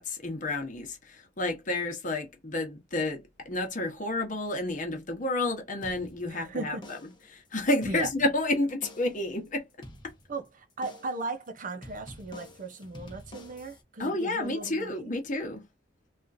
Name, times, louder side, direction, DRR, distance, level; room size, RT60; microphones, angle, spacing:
voice 1, 0.0-7.0 7.3-9.7 14.0-15.6, left 2 dB, 45° left, 1.0 m, -30 dB
sound 1, 5.8-6.5 6.8-7.3 7.7-8.5 8.8-9.3 9.8-10.5 10.8-11.3 11.8-13.8, left 1 dB, 25° left, 0.9 m, -48 dB
voice 2, 6.3-6.9 7.8-8.1 10.3-15.1, right 3 dB, 45° right, 0.7 m, -37 dB
3.6 x 2.5 x 2.6 m
head